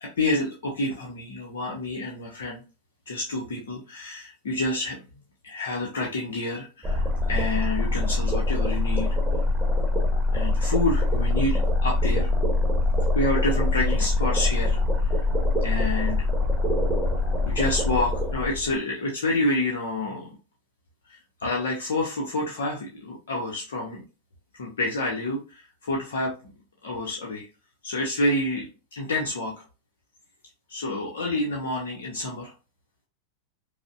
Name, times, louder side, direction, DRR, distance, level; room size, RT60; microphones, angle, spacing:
voice 1, 0.0-2.6 3.1-5.0 5.4-9.2 10.3-12.3 13.1-15.1 15.6-16.2 17.4-20.4 21.1-24.0 24.6-26.5 26.8-27.5 27.8-29.5 30.7-32.5, left 2 dB, 60° left, -1 dB, 0.8 m, -28 dB
sound 1, 6.8-18.8, left 2 dB, 10° right, 1.1 m, -24 dB
5.0 x 2.1 x 2.5 m, 0.31 s
figure-of-eight pair, 90°, 0 cm